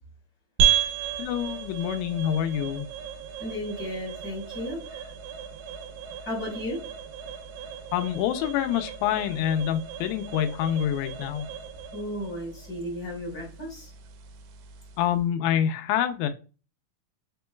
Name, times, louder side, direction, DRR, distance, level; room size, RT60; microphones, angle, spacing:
sound 1, 0.6-15.2, right 8 dB, 80° right, 2.3 m, -33 dB
voice 1, 1.2-2.9 7.9-11.5 15.0-16.3, left 10 dB, 90° left, 9 dB, 2.4 m, -26 dB
voice 2, 3.4-5.1 6.2-6.8 11.9-13.9, equal, 30° left, -2 dB, 2.4 m, -34 dB
5.2 x 3.7 x 2.2 m, 0.34 s
omnidirectional pair, 4.2 m